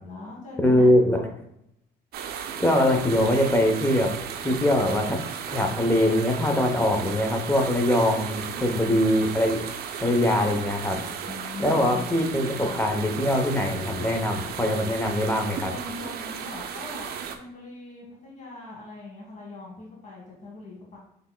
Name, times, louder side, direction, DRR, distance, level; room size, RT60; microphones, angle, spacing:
voice 1, 0.0-1.3 11.1-12.1 12.6-12.9 15.7-21.0, left 2 dB, 50° left, -4 dB, 1.6 m, -41 dB
voice 2, 0.6-1.2 2.6-4.1 4.4-5.2 5.5-9.6 10.0-11.0 11.6-15.7, left 1 dB, 10° left, 3 dB, 0.8 m, -22 dB
sound 1, 2.1-17.4, right 7 dB, 70° right, 0.5 m, -35 dB
6.0 x 3.4 x 2.2 m, 0.76 s
cardioid pair, 110°, 17 cm